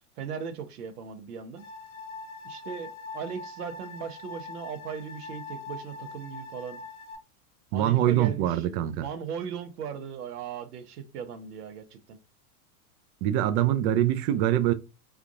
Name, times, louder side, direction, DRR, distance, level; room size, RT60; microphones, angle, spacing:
voice 1, 0.2-1.6 2.4-6.8 7.7-8.7 8.9-12.2, right 7 dB, 80° right, 0.9 m, -38 dB
sound 1, 1.6-7.2, left 3 dB, 55° left, 1.1 m, -42 dB
voice 2, 7.7-9.1 13.2-14.7, right 12 dB, 45° right, 0.4 m, -24 dB
3.5 x 2.3 x 2.5 m
hypercardioid pair, 105°, 45 cm